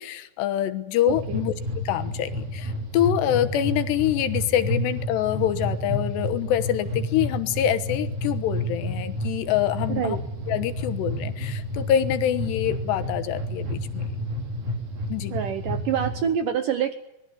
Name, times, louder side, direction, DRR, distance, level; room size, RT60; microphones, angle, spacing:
voice 1, 0.0-10.2 10.5-14.0 15.1-15.4, left 11 dB, 75° left, 10 dB, 3.3 m, -25 dB
sound 1, 1.1-16.2, equal, 50° right, 5.3 m, -30 dB
voice 2, 1.1-1.4 10.0-10.2 15.3-16.9, right 8 dB, 70° right, 9 dB, 2.1 m, -26 dB
25.5 x 20.5 x 8.2 m, 0.88 s
omnidirectional pair, 5.1 m